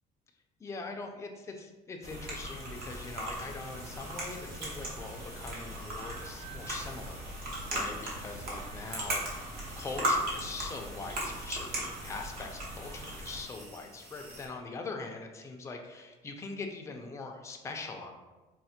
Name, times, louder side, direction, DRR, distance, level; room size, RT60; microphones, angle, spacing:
voice 1, 0.6-7.2 7.7-9.2 9.8-18.1, left 3 dB, 15° left, 2 dB, 0.4 m, -42 dB
sound 1, 2.0-13.4, right 1 dB, 65° right, 1.0 m, -37 dB
sound 2, 2.7-14.5, right 1 dB, 40° right, 1.4 m, -53 dB
sound 3, 5.8-12.9, right 5 dB, 80° right, 1.4 m, -57 dB
4.1 x 2.1 x 2.7 m, 1.2 s
cardioid pair, 110°, 17 cm